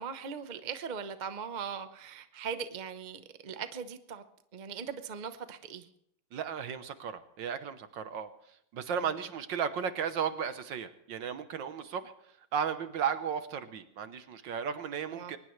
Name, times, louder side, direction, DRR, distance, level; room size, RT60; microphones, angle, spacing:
voice 1, 0.0-4.2 4.5-5.9 15.1-15.3, right 6 dB, 45° right, 9 dB, 0.5 m, -39 dB
voice 2, 6.3-8.3 8.7-12.1 12.5-15.4, right 7 dB, 65° right, 10 dB, 1.6 m, -34 dB
23.0 x 19.5 x 3.2 m, 0.74 s
omnidirectional pair, 2.4 m